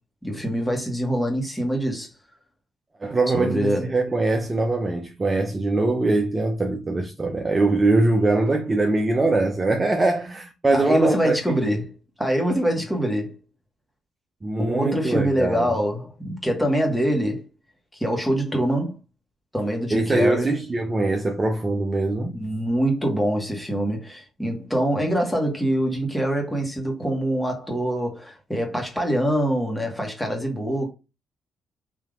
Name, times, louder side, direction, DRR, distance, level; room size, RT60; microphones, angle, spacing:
voice 1, 0.2-2.1 3.3-3.9 10.7-13.4 14.6-17.4 17.9-18.9 19.5-20.5 22.3-30.9, equal, 5° left, 1.5 m, -24 dB
voice 2, 3.0-11.6 14.4-15.7 19.9-22.4, right 2 dB, 25° right, 0.6 m, -22 dB
3.6 x 2.8 x 3.6 m
cardioid pair, 90°, 0 cm